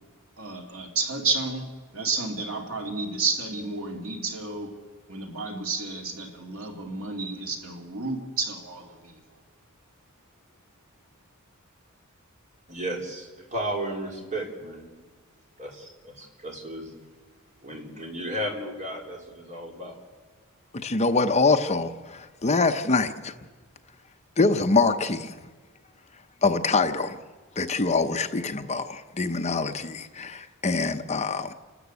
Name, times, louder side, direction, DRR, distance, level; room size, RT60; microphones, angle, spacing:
voice 1, 0.4-1.7 1.9-4.8 5.1-9.2, right 3 dB, 70° right, 2.7 m, -31 dB
voice 2, 12.7-14.9 15.6-16.9 17.6-20.0, right 1 dB, 35° right, 3.9 m, -34 dB
voice 3, 20.7-23.3 24.4-25.3 26.4-27.2 27.6-31.5, left 3 dB, 30° left, 0.8 m, -24 dB
29.5 x 13.0 x 8.3 m
head